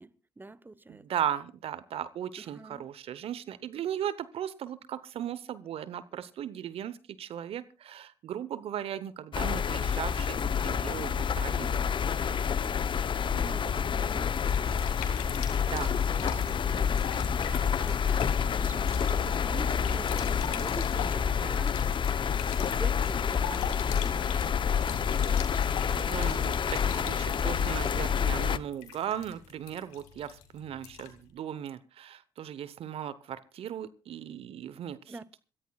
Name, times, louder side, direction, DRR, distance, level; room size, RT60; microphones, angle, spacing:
voice 1, 0.0-1.1 2.4-2.8 13.3-14.8 15.1-23.8 24.0-24.5 35.1-35.3, right 2 dB, 20° right, 0.9 m, -46 dB
voice 2, 0.9-11.9 15.7-16.4 25.9-35.1, right 10 dB, 65° right, 0.9 m, -37 dB
sound 1, 9.3-28.6, left 7 dB, 50° left, 0.8 m, -28 dB
sound 2, 14.4-31.3, left 10 dB, 85° left, 2.2 m, -44 dB
26.5 x 14.5 x 2.3 m
hypercardioid pair, 45°, 11 cm